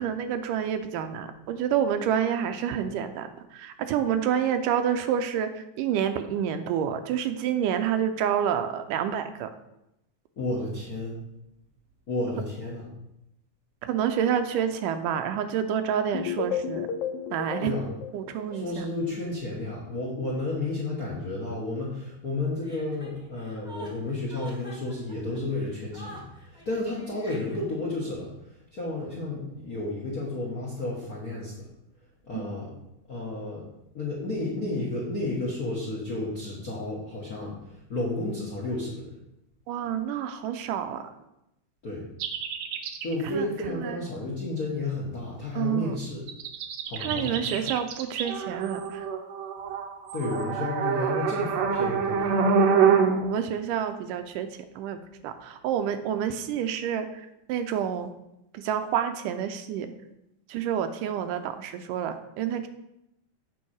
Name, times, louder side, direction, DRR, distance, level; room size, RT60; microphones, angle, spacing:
voice 1, 0.0-9.5 13.8-16.9 17.3-17.7 18.1-18.9 39.7-41.1 43.2-44.0 45.6-46.0 47.0-49.1 52.8-54.5 54.8-58.1 58.5-59.9 60.5-62.7, right 9 dB, 90° right, 8 dB, 2.3 m, -28 dB
voice 2, 10.4-11.2 12.1-12.8 17.6-17.8 18.5-28.3 28.7-31.5 32.2-32.7 33.1-33.6 33.9-37.6 37.9-39.1 41.8-42.1 43.0-46.3 46.9-47.7 50.1-52.4, left 2 dB, 50° left, -4 dB, 1.0 m, -32 dB
sound 1, 16.1-19.1, left 7 dB, 80° left, 1.8 m, -33 dB
Chuckle chortle, 22.6-27.9, right 1 dB, 5° right, 0.6 m, -46 dB
sound 2, 42.2-43.1 46.3-53.2, right 6 dB, 75° right, 1.6 m, -25 dB
7.2 x 4.6 x 6.3 m, 0.85 s
omnidirectional pair, 3.7 m